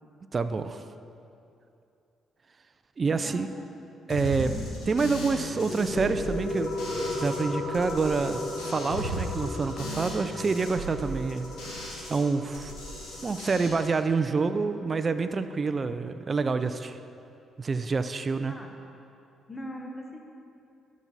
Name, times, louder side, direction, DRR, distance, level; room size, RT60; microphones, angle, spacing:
voice 1, 0.3-0.8 3.0-3.5 4.1-4.5 4.9-6.7 7.1-12.7 13.2-17.0 17.6-18.5, right 4 dB, 35° right, 10 dB, 0.4 m, -27 dB
voice 2, 3.1-3.7 4.4-4.7 18.5-18.8 19.5-20.2, equal, 20° left, 2 dB, 1.2 m, -40 dB
sound 1, 4.1-7.4 7.7-12.2 12.5-13.7, right 1 dB, 85° left, 2.2 m, -37 dB
sound 2, 4.9-15.9, left 2 dB, 55° left, 1.1 m, -36 dB
12.0 x 6.0 x 4.0 m, 2.7 s
cardioid pair, 90°, 0 cm